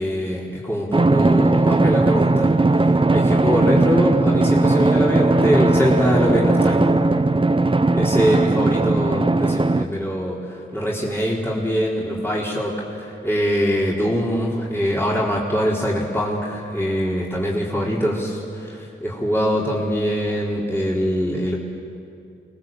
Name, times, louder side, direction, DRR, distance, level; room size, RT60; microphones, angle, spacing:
voice 1, 0.0-2.5 2.8-6.8 7.9-10.4 10.7-21.6, equal, 10° left, -5 dB, 4.1 m, -23 dB
Drum, 0.9-9.9, right 2 dB, 25° right, 0.8 m, -18 dB
24.5 x 19.5 x 7.6 m, 2.6 s
cardioid pair, 50°, 21 cm